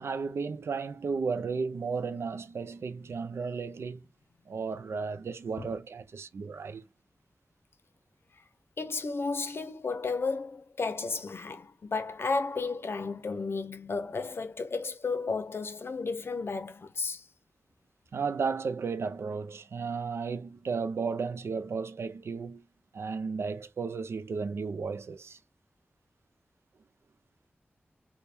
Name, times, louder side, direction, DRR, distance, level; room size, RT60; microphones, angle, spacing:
voice 1, 0.0-4.0 4.5-6.8 18.1-22.6 22.9-25.4, right 5 dB, 85° right, 0.4 m, -34 dB
voice 2, 8.8-17.2, left 4 dB, 70° left, 0.6 m, -33 dB
3.4 x 2.2 x 4.3 m
cardioid pair, 55°, 4 cm